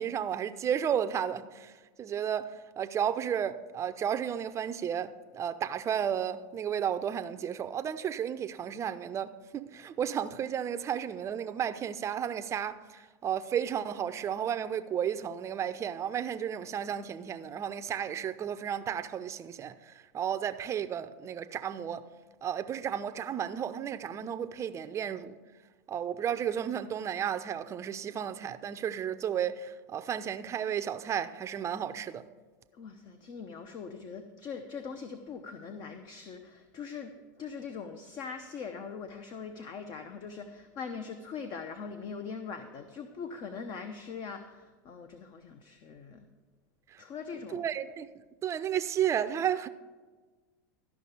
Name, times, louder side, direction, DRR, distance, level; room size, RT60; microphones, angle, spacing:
voice 1, 0.0-22.1 22.4-25.3 25.9-32.3 46.9-47.0 47.5-48.1 48.4-49.7, right 9 dB, 30° right, 0.6 m, -33 dB
voice 2, 32.7-46.3 47.0-47.6, left 5 dB, 45° left, 0.8 m, -42 dB
13.0 x 5.7 x 6.9 m
hypercardioid pair, 110°, 10 cm